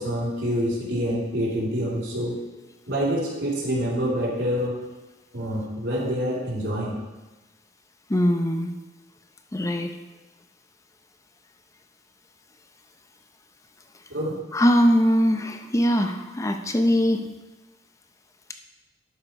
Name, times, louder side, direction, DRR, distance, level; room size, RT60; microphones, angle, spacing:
voice 1, 0.0-2.4 2.9-4.8 5.3-7.0 14.1-14.4, equal, 80° right, -6 dB, 2.9 m, -26 dB
voice 2, 8.1-8.7 9.5-9.9 14.5-17.3, equal, 15° left, 5 dB, 0.6 m, -21 dB
11.5 x 5.1 x 4.3 m, 1.2 s
head